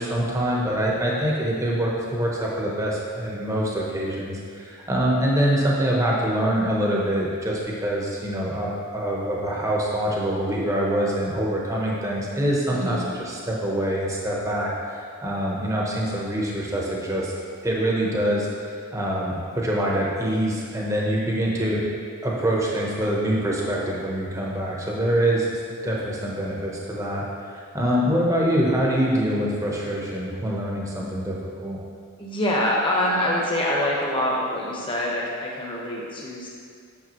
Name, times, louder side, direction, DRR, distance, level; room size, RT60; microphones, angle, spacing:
voice 1, 0.0-17.3 17.6-18.5 18.9-21.8 22.2-25.5 25.8-31.8, right 1 dB, 15° right, -3 dB, 0.9 m, -25 dB
voice 2, 12.7-13.1 32.2-36.5, left 1 dB, 20° left, -3 dB, 1.1 m, -25 dB
8.8 x 6.5 x 3.0 m, 2.2 s
head